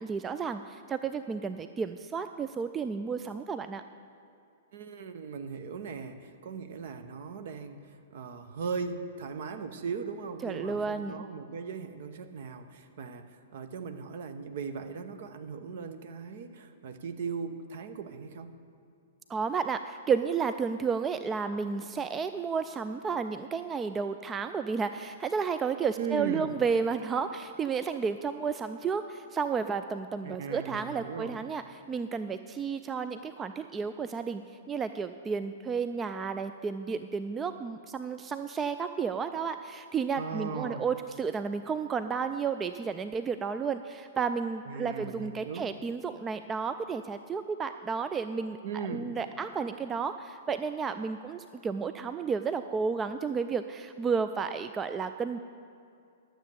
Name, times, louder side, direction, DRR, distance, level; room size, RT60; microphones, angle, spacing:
voice 1, 0.0-3.8 10.4-11.3 19.3-34.4 34.7-55.4, right 5 dB, 15° right, 10 dB, 0.3 m, -32 dB
voice 2, 4.7-7.8 8.1-18.5 26.0-26.6 30.2-31.4 40.2-40.9 44.7-45.7 48.6-49.1, right 5 dB, 50° right, 9 dB, 0.8 m, -38 dB
12.0 x 7.6 x 6.9 m, 2.6 s
figure-of-eight pair, 110°, 0 cm